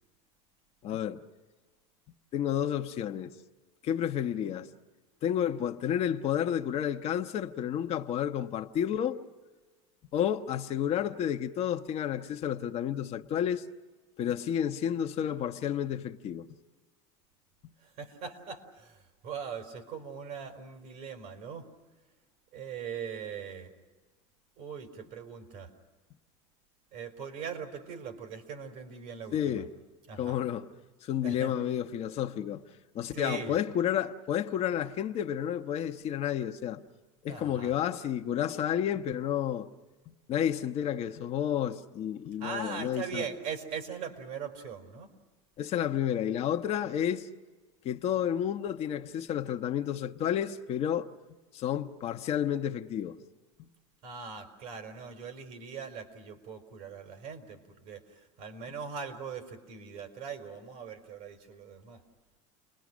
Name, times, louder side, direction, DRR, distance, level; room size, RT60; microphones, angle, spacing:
voice 1, 0.8-1.2 2.3-3.3 3.8-4.7 5.2-9.2 10.1-13.6 14.2-16.5 17.6-17.7 29.3-29.7 30.2-30.7 31.0-32.7 32.9-36.8 37.2-39.7 40.1-43.3 45.6-47.3 47.8-51.1 51.5-53.2 53.6-53.7, left 10 dB, 40° left, 1.0 m, -31 dB
voice 2, 17.8-21.7 22.5-23.7 24.6-25.7 26.9-29.6 30.1-30.4 31.2-31.5 33.1-33.6 37.3-37.7 42.4-45.1 54.0-62.0, right 6 dB, 60° right, 4.4 m, -40 dB
30.0 x 21.0 x 6.3 m
supercardioid pair, 125°, 16 cm